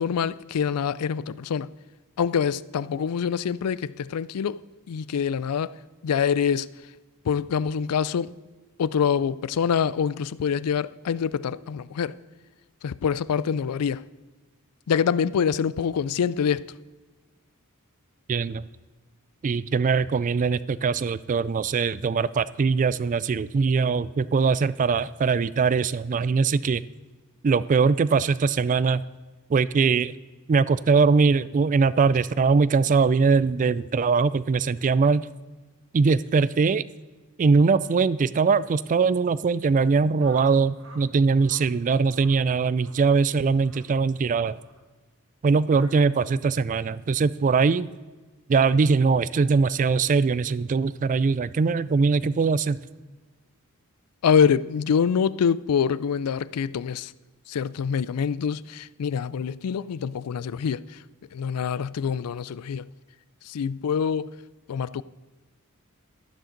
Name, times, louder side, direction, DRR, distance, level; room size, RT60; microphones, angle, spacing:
voice 1, 0.0-1.7 2.2-4.6 4.9-5.8 6.0-6.7 7.2-8.3 8.8-12.1 12.8-14.0 14.9-16.7 54.2-57.1 57.5-61.0 61.3-62.9 63.4-64.3 64.7-65.0, left 7 dB, 85° left, 0.4 m, -25 dB
voice 2, 18.3-18.6 19.4-26.8 27.4-29.0 29.5-30.1 30.5-35.3 35.9-36.8 37.4-44.6 45.4-47.9 48.5-52.8, right 5 dB, 35° right, 0.3 m, -21 dB
sound 1, 40.2-41.0 41.3-41.7 42.1-42.4 42.8-43.0 43.6-43.9 44.6-44.8 45.7-45.9, right 2 dB, 65° right, 1.6 m, -49 dB
12.5 x 11.0 x 3.9 m
head